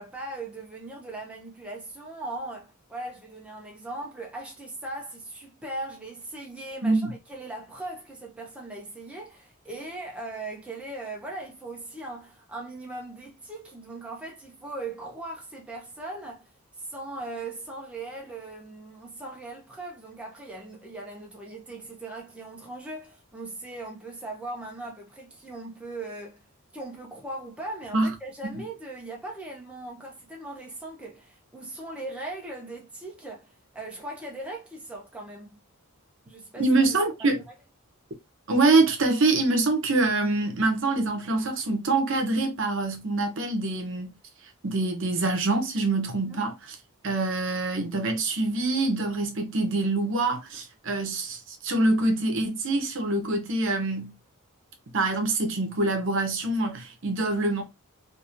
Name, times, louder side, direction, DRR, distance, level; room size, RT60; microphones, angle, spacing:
voice 1, 0.0-26.5 26.7-35.6 36.3-36.6 37.2-37.4 46.2-46.4, right 2 dB, 5° right, 0.5 m, -39 dB
voice 2, 36.6-37.4 38.5-44.1 44.6-46.7 47.0-54.1 54.9-57.6, right 2 dB, 55° right, 0.7 m, -25 dB
2.8 x 2.6 x 2.4 m
head